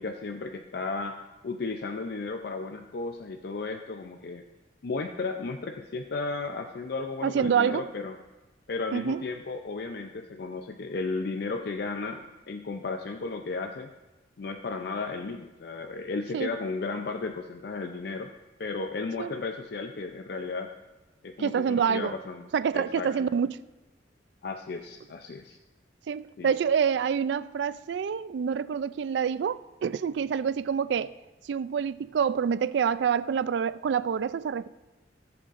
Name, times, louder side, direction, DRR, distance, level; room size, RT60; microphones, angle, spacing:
voice 1, 0.0-4.4 4.8-8.2 8.7-13.9 14.4-18.3 18.6-20.7 21.2-22.5 22.7-23.1 24.4-25.6 26.4-26.5, left 3 dB, 60° left, 0.5 m, -34 dB
voice 2, 7.2-7.9 8.9-9.2 16.3-16.5 19.2-19.4 21.4-22.1 22.5-23.6 26.1-31.1 31.4-34.7, right 7 dB, 70° right, 0.3 m, -27 dB
17.5 x 7.8 x 2.5 m
head